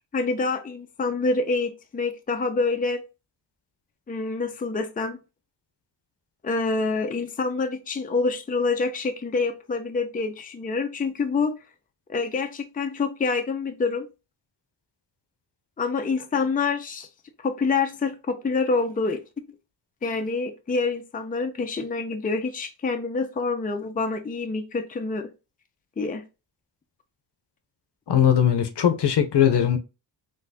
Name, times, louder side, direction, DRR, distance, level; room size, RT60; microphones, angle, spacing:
voice 1, 0.1-3.0 4.1-5.2 6.4-11.5 12.1-14.1 15.8-17.1 17.4-19.2 20.0-25.3 26.0-26.2, left 4 dB, 20° left, 0.5 m, -26 dB
voice 2, 28.1-29.8, left 9 dB, 65° left, 0.7 m, -20 dB
4.0 x 2.6 x 2.7 m
cardioid pair, 70°, 45 cm